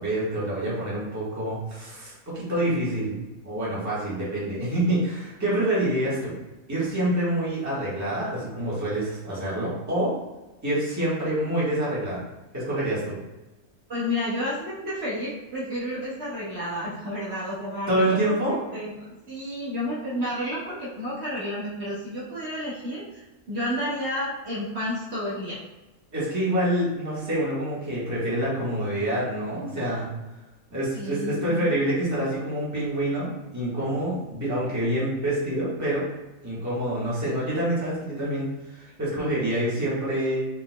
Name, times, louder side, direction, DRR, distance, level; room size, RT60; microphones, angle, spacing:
voice 1, 0.0-3.2 3.4-6.3 6.7-10.1 10.6-12.2 12.5-13.2 17.9-18.6 26.1-30.1 30.7-36.1 36.4-40.4, right 1 dB, 10° right, -8 dB, 1.4 m, -26 dB
voice 2, 13.9-18.2 18.5-25.6 30.9-31.7, left 1 dB, 45° right, -9 dB, 1.4 m, -31 dB
5.2 x 4.1 x 2.2 m, 1.1 s
omnidirectional pair, 1.6 m